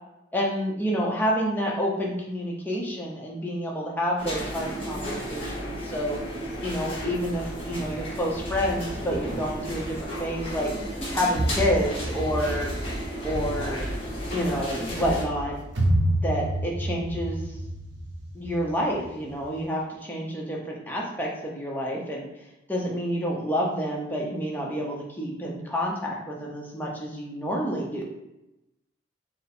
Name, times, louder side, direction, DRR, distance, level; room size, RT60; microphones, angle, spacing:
voice 1, 0.3-6.2 6.6-10.7 11.1-12.7 13.2-13.9 14.3-15.5 16.2-17.4 18.3-22.2 22.7-28.0, equal, 10° left, -3 dB, 0.7 m, -28 dB
sound 1, 4.2-15.2, equal, 30° left, 1.1 m, -33 dB
sound 2, 8.3-19.6, right 1 dB, 75° right, 0.7 m, -31 dB
4.0 x 2.0 x 4.2 m, 0.91 s
head